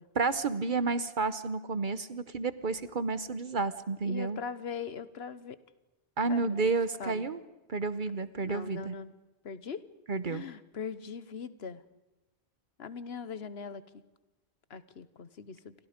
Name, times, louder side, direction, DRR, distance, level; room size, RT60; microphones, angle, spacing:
voice 1, 0.1-4.4 6.2-7.4 7.7-8.9 10.1-10.4, right 4 dB, 50° right, 13 dB, 1.0 m, -31 dB
voice 2, 4.0-5.6 6.3-6.7 7.0-7.3 8.4-9.1 9.4-9.9 10.3-11.8 12.8-14.0 14.7-15.7, left 6 dB, 70° left, 14 dB, 1.3 m, -41 dB
28.5 x 23.5 x 5.1 m, 1.0 s
omnidirectional pair, 1.1 m